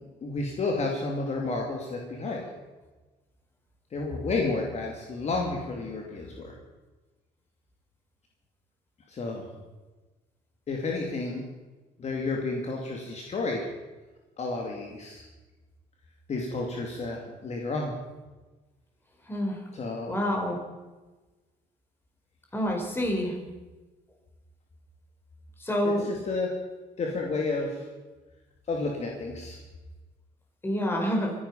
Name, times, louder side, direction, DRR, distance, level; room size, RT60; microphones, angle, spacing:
voice 1, 0.0-2.5 3.9-6.5 9.1-9.4 10.7-11.4 12.0-13.7 14.4-15.3 16.3-17.9 19.7-20.1 25.8-26.5 27.0-27.9 28.7-29.6, left 3 dB, 40° left, 0 dB, 2.6 m, -31 dB
voice 2, 20.1-20.6 22.5-23.3 25.6-26.0 30.6-31.3, equal, 15° left, 1 dB, 4.6 m, -27 dB
25.0 x 10.5 x 5.6 m, 1.2 s
cardioid pair, 110°, 17 cm